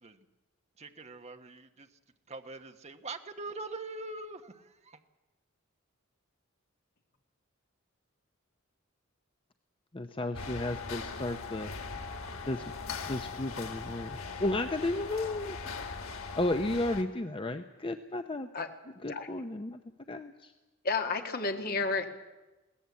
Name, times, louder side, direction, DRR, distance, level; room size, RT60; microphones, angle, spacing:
voice 1, 0.8-1.9 2.3-5.0, right 3 dB, 35° right, 7 dB, 1.1 m, -43 dB
voice 2, 9.9-11.7 12.5-12.6 13.0-15.6 15.9-16.0 16.3-18.5 19.0-19.8 20.1-20.5, left 2 dB, 25° left, 8 dB, 0.7 m, -33 dB
sound 1, 10.3-17.0, left 4 dB, 90° left, 2.1 m, -40 dB
voice 3, 18.5-19.3 20.8-22.1, left 4 dB, 45° left, 4 dB, 1.9 m, -32 dB
21.5 x 17.5 x 8.4 m, 1.1 s
head